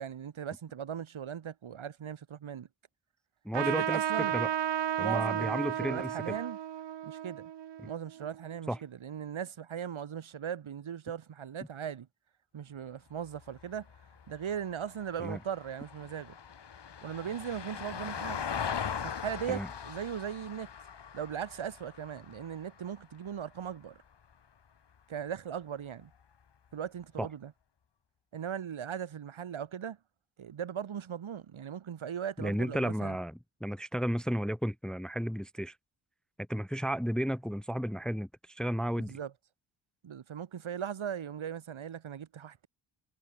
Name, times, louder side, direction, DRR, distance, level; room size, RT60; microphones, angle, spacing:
voice 1, 0.0-2.7 3.5-4.4 5.0-6.6 7.0-7.5 7.8-12.1 12.5-13.9 14.3-16.4 17.0-18.5 19.0-20.7 21.1-24.0 25.1-26.1 26.7-27.5 28.3-30.0 30.4-33.2 39.0-39.3 40.0-42.7, right 8 dB, 85° right, 6.9 m, -38 dB
voice 2, 3.4-4.5 5.0-6.4 8.7-8.8 15.2-15.4 19.5-19.7 27.2-27.3 32.4-35.7 36.5-39.2, equal, ahead, 0.9 m, -33 dB
Trumpet, 3.5-8.5, right 11 dB, 60° right, 0.9 m, -33 dB
Vehicle, 13.2-23.7 26.0-26.1, left 7 dB, 60° left, 7.6 m, -41 dB
wide cardioid pair, 165°, 47 cm